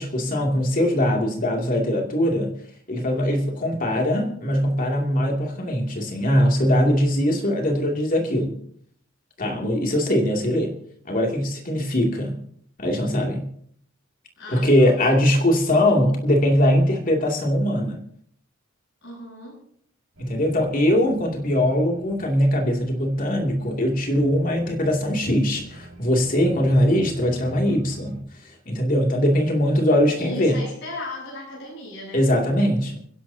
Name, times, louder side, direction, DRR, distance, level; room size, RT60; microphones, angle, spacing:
voice 1, 0.0-2.5 2.9-8.6 9.4-10.7 11.0-12.4 12.8-13.5 14.5-18.0 20.2-28.2 28.7-30.6 32.1-33.0, equal, 40° left, 1 dB, 2.7 m, -21 dB
voice 2, 14.4-15.6 15.8-16.0 19.0-19.6 30.2-32.3, left 2 dB, 60° left, -4 dB, 8.0 m, -37 dB
sound 1, 20.1-28.2, right 2 dB, 75° right, 4.9 m, -44 dB
29.0 x 11.0 x 2.8 m, 0.63 s
head